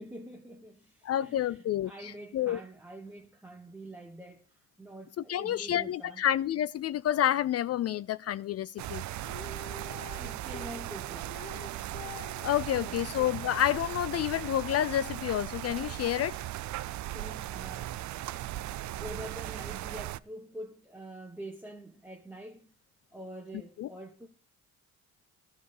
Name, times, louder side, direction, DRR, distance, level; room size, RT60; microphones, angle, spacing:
voice 1, 0.0-6.2 10.2-11.4 12.8-13.1 16.8-18.2 18.8-22.7 23.1-24.3, right 1 dB, 5° right, 1.3 m, -46 dB
voice 2, 1.0-2.6 5.2-9.0 12.4-16.4 23.8-23.9, left 11 dB, 55° left, 0.5 m, -29 dB
sound 1, 8.8-20.2, right 14 dB, 70° right, 0.5 m, -38 dB
Female singing, 9.2-12.4 14.4-14.5, left 6 dB, 30° left, 2.3 m, -46 dB
12.5 x 4.8 x 6.6 m
cardioid pair, 90°, 30 cm